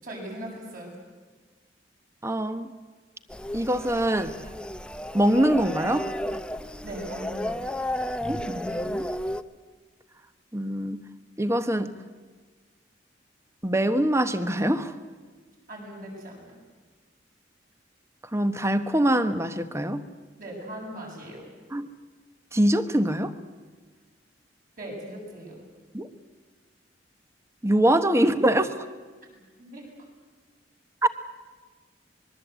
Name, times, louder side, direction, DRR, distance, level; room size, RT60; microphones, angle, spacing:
voice 1, 0.0-0.9 6.8-7.7 15.7-16.6 20.4-21.4 24.8-25.6 29.3-29.9, right 1 dB, 50° right, -1 dB, 8.0 m, -39 dB
voice 2, 2.2-2.7 3.5-4.3 5.1-6.1 8.3-9.1 10.5-11.0 11.4-11.9 13.6-14.9 18.3-20.0 21.7-21.9 22.5-23.3 25.9-26.1 27.6-28.8 31.0-31.1, right 1 dB, 15° right, 11 dB, 1.1 m, -23 dB
sound 1, 3.3-9.4, left 1 dB, 5° left, 0.7 m, -33 dB
25.0 x 22.0 x 8.2 m, 1.4 s
head